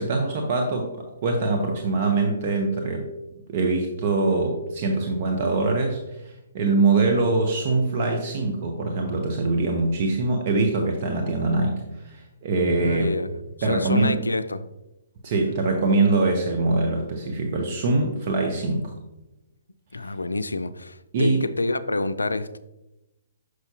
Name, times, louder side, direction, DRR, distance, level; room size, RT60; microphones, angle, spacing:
voice 1, 0.0-3.1 3.5-13.1 13.6-14.2 15.2-18.9 21.1-21.5, right 3 dB, 45° right, 2 dB, 0.9 m, -23 dB
voice 2, 12.8-14.7 19.9-22.6, left 2 dB, 85° left, 12 dB, 0.4 m, -27 dB
6.2 x 5.7 x 2.8 m, 0.93 s
figure-of-eight pair, 130°, 0 cm